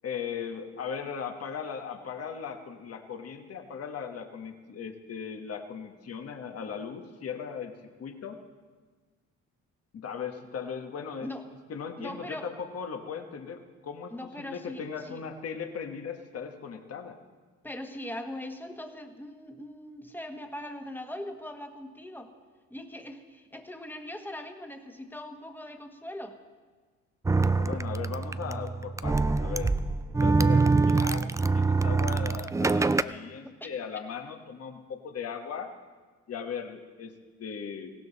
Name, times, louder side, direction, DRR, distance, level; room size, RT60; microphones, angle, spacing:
voice 1, 0.0-7.7 8.0-8.4 9.9-11.3 11.7-17.2 27.4-29.8 30.2-35.7 36.3-37.1 37.4-37.9, left 7 dB, 55° left, 5 dB, 1.4 m, -38 dB
voice 2, 12.0-12.5 14.1-15.2 17.6-22.4 22.7-26.4 33.4-33.7, left 1 dB, 5° left, 5 dB, 1.5 m, -40 dB
sound 1, 27.3-33.0, right 3 dB, 10° right, 0.3 m, -25 dB
18.5 x 16.0 x 4.1 m, 1.4 s
cardioid pair, 90°, 30 cm